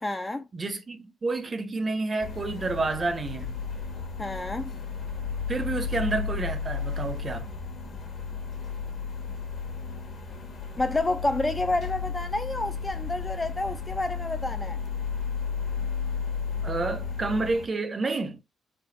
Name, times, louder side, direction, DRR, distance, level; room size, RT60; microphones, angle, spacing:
voice 1, 0.0-0.4 4.2-4.7 10.8-14.8, left 2 dB, 15° left, 0.3 m, -29 dB
voice 2, 0.5-3.5 5.5-7.5 16.6-18.4, right 3 dB, 30° right, 0.6 m, -29 dB
sound 1, 2.2-17.7, left 5 dB, 50° left, 1.0 m, -33 dB
3.4 x 2.2 x 3.9 m
cardioid pair, 90°, 0 cm